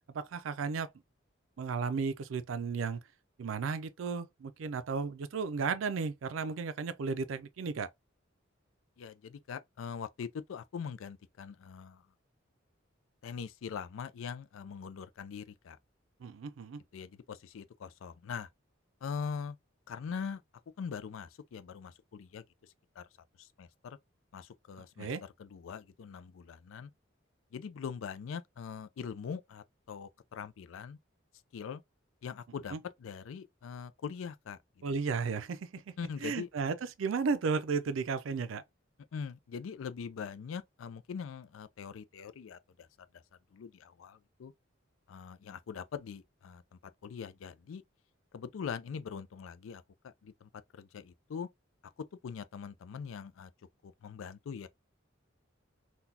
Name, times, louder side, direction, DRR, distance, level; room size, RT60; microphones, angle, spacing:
voice 1, 0.1-0.9 1.6-3.0 3.4-7.9 16.2-16.8 25.0-25.2 32.7-32.8 34.8-35.9 36.2-38.6, right 5 dB, 80° right, 0.4 m, -34 dB
voice 2, 9.0-12.0 13.2-15.8 16.9-18.5 19.0-19.6 19.9-20.4 20.8-22.4 23.0-23.1 23.4-24.0 24.3-25.1 25.4-26.9 27.5-31.0 31.5-31.8 32.2-32.7 33.0-34.6 36.0-36.5 39.1-42.6 43.5-44.5 45.1-47.8 48.3-51.5 51.8-51.9 52.2-53.5 53.8-54.7, left 6 dB, 85° left, 0.4 m, -42 dB
3.9 x 2.2 x 2.7 m
head